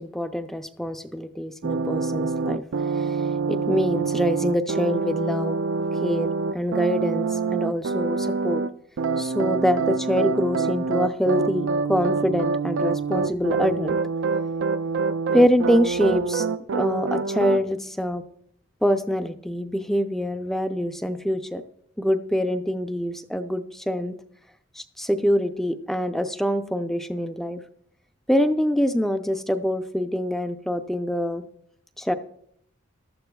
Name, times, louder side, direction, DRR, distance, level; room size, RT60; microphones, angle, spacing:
voice 1, 0.0-2.6 3.5-5.6 6.0-8.6 9.2-14.0 15.3-16.4 16.7-18.2 18.8-21.6 22.0-24.1 24.8-27.6 28.3-31.4 32.0-32.1, equal, ahead, 8 dB, 0.4 m, -25 dB
sound 1, 1.6-8.7 9.0-17.6, right 4 dB, 60° right, 0.4 m, -26 dB
15.0 x 12.5 x 2.3 m, 0.71 s
head